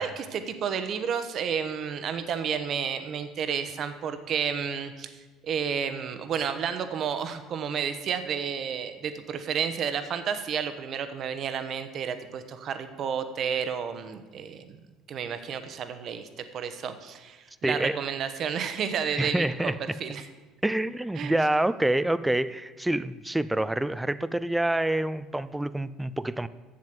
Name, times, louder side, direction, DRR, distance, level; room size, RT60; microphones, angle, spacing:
voice 1, 0.0-5.1 5.4-14.8 15.1-19.7 20.0-20.3 21.2-21.3, right 7 dB, 50° right, 9 dB, 1.0 m, -31 dB
voice 2, 17.6-18.0 19.1-19.8 20.6-26.5, right 1 dB, 5° right, 15 dB, 0.4 m, -27 dB
7.6 x 7.3 x 7.7 m, 1.3 s
supercardioid pair, 105°, 0 cm